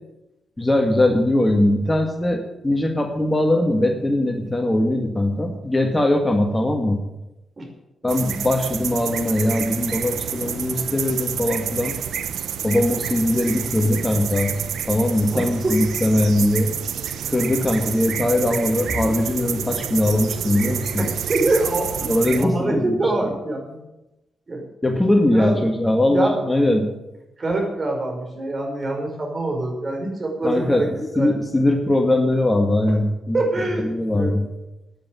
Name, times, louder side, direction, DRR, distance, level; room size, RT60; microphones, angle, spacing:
voice 1, 0.6-7.0 8.0-12.0 12.6-14.5 14.9-16.7 17.3-21.0 22.1-23.0 24.8-26.9 30.4-30.9 31.2-33.4 33.8-34.5, left 1 dB, 15° left, 4 dB, 1.8 m, -20 dB
sound 1, 8.1-22.4, right 8 dB, 80° right, 0.9 m, -29 dB
voice 2, 15.3-15.8 21.0-23.8 24.5-24.6 25.1-25.6 26.1-26.3 27.4-31.3 32.9-33.0 33.3-33.9 34.1-34.3, right 2 dB, 35° right, 1 dB, 5.1 m, -25 dB
9.7 x 9.5 x 9.8 m, 0.96 s
cardioid pair, 70°, 0 cm